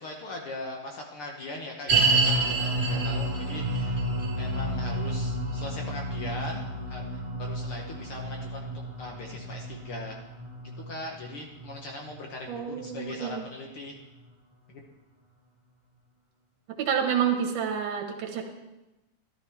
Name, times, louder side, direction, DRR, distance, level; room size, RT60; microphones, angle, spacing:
voice 1, 0.0-4.0 4.4-8.7 9.0-10.2 10.8-14.0 14.7-14.8, left 2 dB, 60° left, 0 dB, 1.5 m, -40 dB
sound 1, 1.9-13.2 13.4-13.5 14.2-14.3, right 2 dB, 15° right, 3.4 m, -29 dB
voice 2, 12.5-13.4 16.8-18.5, right 8 dB, 85° right, 3 dB, 2.9 m, -28 dB
13.0 x 12.0 x 3.5 m, 0.99 s
omnidirectional pair, 3.5 m